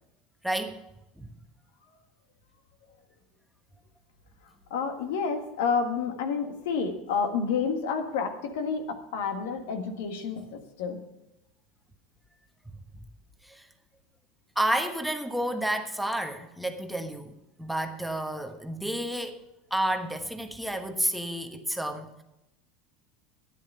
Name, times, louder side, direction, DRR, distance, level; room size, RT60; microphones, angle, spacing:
voice 1, 0.4-0.8 1.2-1.3 13.4-13.7 14.5-17.3 17.6-19.4 19.7-22.2, right 1 dB, 5° right, 6 dB, 1.2 m, -30 dB
voice 2, 4.7-11.0, left 5 dB, 70° left, 6 dB, 1.6 m, -29 dB
12.0 x 10.0 x 5.6 m, 0.89 s
hypercardioid pair, 80°, 0 cm